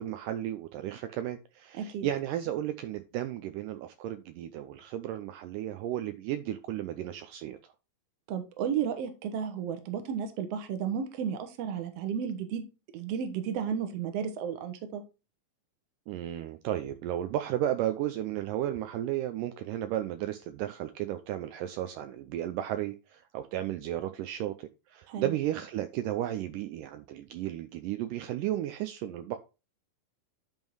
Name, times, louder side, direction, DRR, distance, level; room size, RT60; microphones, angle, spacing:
voice 1, 0.0-7.6 16.1-29.4, right 12 dB, 80° right, 2.0 m, -34 dB
voice 2, 1.7-2.1 8.3-12.6 12.9-15.0 25.1-25.3, right 8 dB, 65° right, 1.7 m, -33 dB
10.5 x 3.7 x 4.7 m
omnidirectional pair, 4.2 m